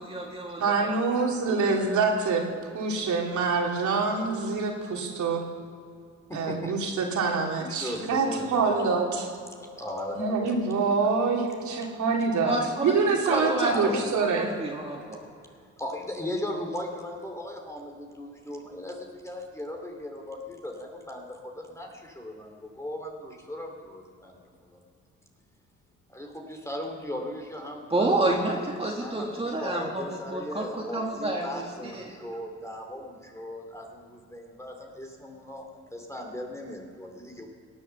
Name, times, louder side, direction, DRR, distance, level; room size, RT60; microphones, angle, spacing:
voice 1, 0.0-0.9 12.4-12.9 13.2-14.0 14.4-15.2 27.9-32.0, right 2 dB, 20° right, -1 dB, 2.0 m, -29 dB
voice 2, 0.6-2.4 2.7-5.4 6.3-9.3 10.1-12.6 12.8-14.5, right 4 dB, 70° right, 0 dB, 3.2 m, -26 dB
voice 3, 6.3-6.7 7.6-8.9 9.4-10.6 11.8-11.9 13.3-14.1 15.6-24.8 26.1-28.6 29.0-37.5, left 1 dB, 10° left, 2 dB, 2.5 m, -38 dB
18.0 x 9.9 x 7.0 m, 2.3 s
cardioid pair, 90°, 30 cm